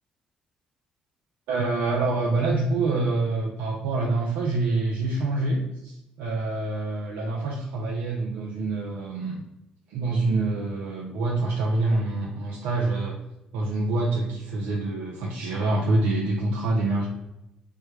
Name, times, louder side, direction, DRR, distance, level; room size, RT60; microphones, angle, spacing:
voice 1, 1.5-9.4 9.9-13.2 13.5-17.1, right 2 dB, 75° right, -2 dB, 0.5 m, -26 dB
3.4 x 2.1 x 3.0 m, 0.91 s
hypercardioid pair, 50°, 3 cm